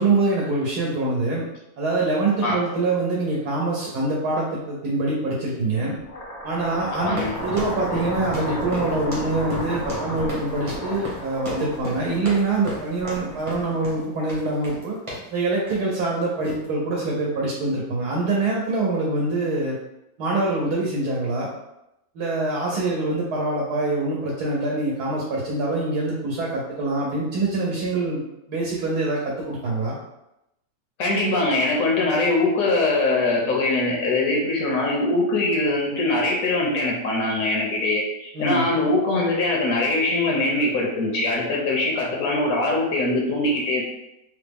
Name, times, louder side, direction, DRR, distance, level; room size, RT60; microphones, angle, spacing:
voice 1, 0.0-1.4 1.8-6.0 6.4-15.0 15.3-19.8 20.2-21.5 22.1-28.2 28.5-30.0 38.3-38.7, right 2 dB, 80° right, -4 dB, 1.2 m, -24 dB
sound 1, 6.0-14.2, left 1 dB, 45° left, 0.4 m, -33 dB
sound 2, 7.1-15.3 15.7-16.0 16.4-16.7, equal, 30° right, 0.7 m, -35 dB
voice 2, 31.0-43.8, left 2 dB, 65° left, -1 dB, 1.0 m, -22 dB
3.4 x 2.0 x 3.4 m, 0.87 s
omnidirectional pair, 1.7 m